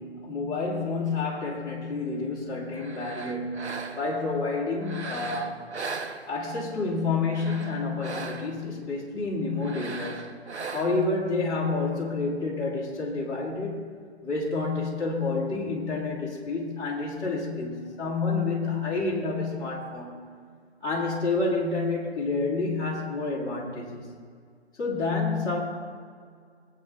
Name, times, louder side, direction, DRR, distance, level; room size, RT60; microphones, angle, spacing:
voice 1, 0.0-5.6 6.3-10.4 10.7-13.8 14.2-20.2 20.8-24.1 24.7-25.6, left 3 dB, 10° left, -7 dB, 2.9 m, -29 dB
sound 1, 2.7-4.2 4.8-6.7 7.2-8.7 9.6-11.2, right 4 dB, 70° right, 1.3 m, -38 dB
20.5 x 8.8 x 3.7 m, 2.1 s
figure-of-eight pair, 140°, 34 cm